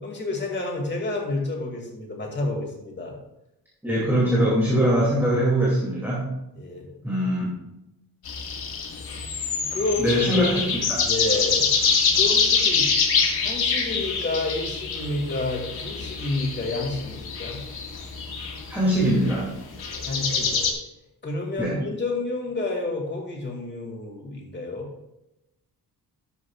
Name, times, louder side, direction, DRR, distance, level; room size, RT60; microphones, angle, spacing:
voice 1, 0.0-3.1 6.6-6.9 8.9-9.2 9.6-11.7 12.1-12.9 13.4-17.6 20.0-20.6 21.2-24.9, left 2 dB, 30° left, 0 dB, 2.2 m, -30 dB
voice 2, 3.8-6.3 7.0-7.5 10.0-10.6 10.9-11.0 18.7-19.5 21.6-21.7, equal, 5° right, -6 dB, 2.4 m, -22 dB
sound 1, 8.3-20.7, left 5 dB, 75° left, 1.8 m, -25 dB
12.5 x 9.5 x 2.4 m, 0.91 s
wide cardioid pair, 160°, 38 cm